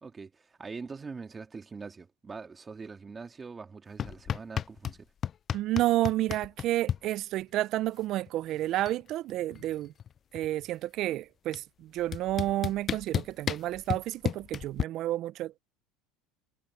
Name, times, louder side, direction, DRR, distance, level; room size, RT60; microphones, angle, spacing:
voice 1, 0.0-5.1, right 4 dB, 20° right, 2.0 m, -43 dB
sound 1, 4.0-5.0 5.2-7.0 8.3-8.4 8.6-9.0 9.3-10.7 11.5-11.6 12.1-14.8, left 8 dB, 35° left, 0.5 m, -32 dB
voice 2, 5.5-9.9 10.3-15.6, right 15 dB, 55° right, 0.4 m, -30 dB
supercardioid pair, 115°, 0 cm